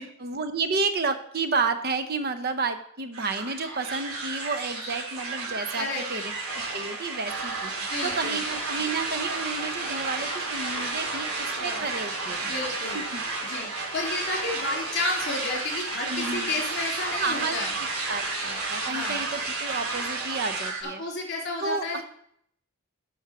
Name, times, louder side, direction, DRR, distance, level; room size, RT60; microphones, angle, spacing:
voice 1, 0.2-7.7 8.0-12.5 12.9-13.2 16.1-16.6 17.2-17.6 18.1-21.0 21.6-22.0, right 4 dB, 45° right, 10 dB, 0.7 m, -31 dB
sound 1, 3.1-20.8, right 3 dB, 90° right, 2.3 m, -32 dB
voice 2, 5.8-6.2 7.9-8.4 11.6-11.8 12.4-13.0 13.5-17.7 18.9-19.2 21.0-22.0, left 3 dB, 50° left, 0 dB, 3.3 m, -32 dB
9.2 x 6.2 x 6.0 m, 0.68 s
head